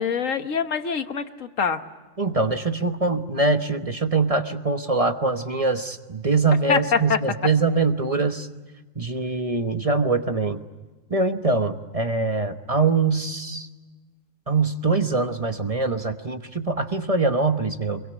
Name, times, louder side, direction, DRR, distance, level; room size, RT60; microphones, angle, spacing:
voice 1, 0.0-1.8 6.7-6.8 7.1-7.2, left 6 dB, 85° left, 9 dB, 1.7 m, -24 dB
voice 2, 2.2-8.5 9.0-10.6 11.1-13.7 14.5-18.0, right 3 dB, 30° right, 8 dB, 1.1 m, -23 dB
25.5 x 22.5 x 9.8 m, 1.2 s
omnidirectional pair, 1.3 m